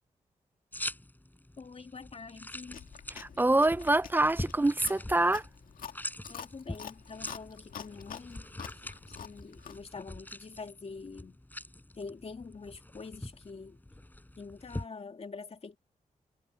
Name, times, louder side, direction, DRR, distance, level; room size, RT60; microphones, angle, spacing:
sound 1, 0.7-14.9, left 1 dB, 10° left, 5.7 m, -44 dB
voice 1, 1.6-2.8 6.3-8.5 9.1-11.4 12.0-13.8 14.4-15.8, left 4 dB, 45° left, 3.0 m, -45 dB
Chewing mastication, 2.7-9.9, left 8 dB, 90° left, 1.9 m, -47 dB
voice 2, 3.2-5.4, right 2 dB, 15° right, 0.5 m, -25 dB
cardioid pair, 85°, 14 cm